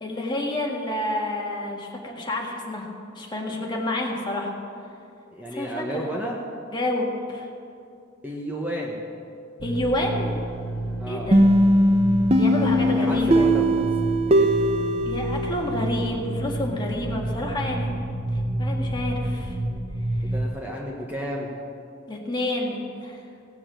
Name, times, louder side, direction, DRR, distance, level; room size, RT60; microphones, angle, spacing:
voice 1, 0.0-2.9 3.2-4.5 5.5-6.1 6.7-7.5 9.6-10.4 11.1-11.4 12.4-13.5 15.0-17.9 18.6-19.6 22.1-23.2, left 1 dB, 25° left, -1 dB, 1.8 m, -29 dB
voice 2, 5.3-6.4 8.2-9.0 11.0-11.3 12.8-14.5 20.2-21.5, equal, 10° right, -2 dB, 1.1 m, -33 dB
sound 1, 9.6-20.5, right 1 dB, 80° right, 1.4 m, -30 dB
sound 2, 11.3-16.0, equal, 30° right, 0.8 m, -20 dB
17.5 x 7.7 x 7.5 m, 2.5 s
head